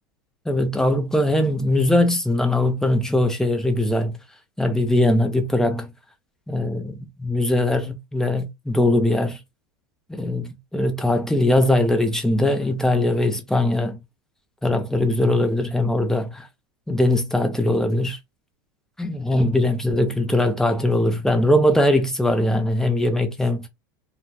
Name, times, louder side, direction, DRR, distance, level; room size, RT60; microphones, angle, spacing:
voice 1, 0.5-4.2 4.6-5.9 6.5-9.4 10.1-14.0 14.6-16.5 16.9-18.2 19.0-23.7, left 1 dB, 5° left, 0.8 m, -21 dB
2.4 x 2.2 x 3.1 m
hypercardioid pair, 100°, 10 cm